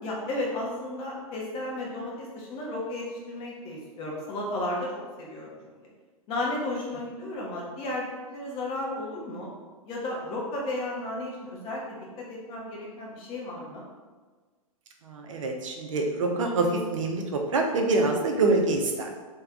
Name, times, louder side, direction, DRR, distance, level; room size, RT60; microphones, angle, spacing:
voice 1, 0.0-4.9 5.2-5.5 6.3-9.5 9.8-13.8, left 1 dB, 30° left, -3 dB, 1.1 m, -33 dB
voice 2, 15.1-19.1, right 2 dB, 60° right, 2 dB, 0.7 m, -25 dB
3.4 x 3.0 x 3.5 m, 1.4 s
figure-of-eight pair, 110°, 19 cm